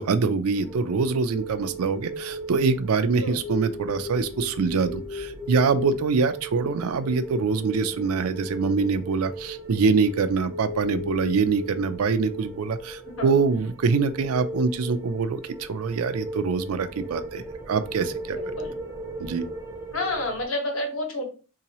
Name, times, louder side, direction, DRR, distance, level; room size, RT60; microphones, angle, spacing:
voice 1, 0.0-18.4 19.2-19.4, right 4 dB, 85° right, 11 dB, 0.4 m, -24 dB
sound 1, 0.5-20.5, equal, 15° right, 0.6 m, -37 dB
voice 2, 18.3-18.8 19.9-21.3, left 1 dB, 65° left, 1 dB, 1.3 m, -29 dB
3.9 x 2.8 x 2.9 m, 0.34 s
head